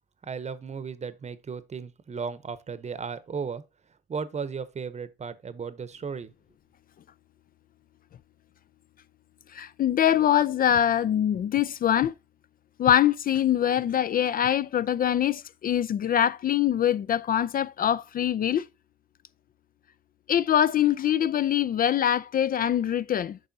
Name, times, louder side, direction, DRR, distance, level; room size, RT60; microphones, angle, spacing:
voice 1, 0.2-3.6 4.1-6.3, right 5 dB, 35° right, 0.8 m, -35 dB
voice 2, 9.5-12.1 12.8-18.6 20.3-23.4, left 10 dB, 45° left, 0.4 m, -23 dB
9.0 x 5.4 x 2.7 m
cardioid pair, 90°, 20 cm